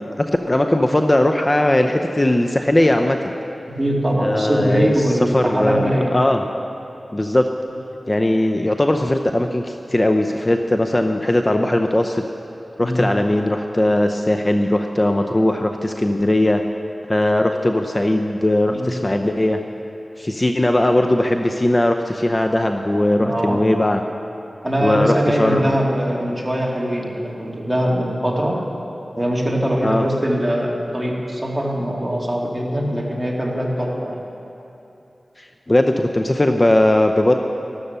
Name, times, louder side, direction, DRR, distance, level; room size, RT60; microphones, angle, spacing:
voice 1, 0.0-3.2 4.2-6.4 7.1-7.5 8.1-12.2 12.8-16.6 17.1-19.6 20.2-24.0 24.8-25.7 29.8-30.0 35.4-37.3, left 1 dB, 30° left, 5 dB, 0.7 m, -19 dB
voice 2, 3.7-6.2 12.8-13.0 18.7-19.0 23.2-23.6 24.6-28.6 29.2-34.2, equal, 15° right, -2 dB, 2.6 m, -22 dB
13.0 x 12.5 x 6.8 m, 2.9 s
wide cardioid pair, 55°, 0 cm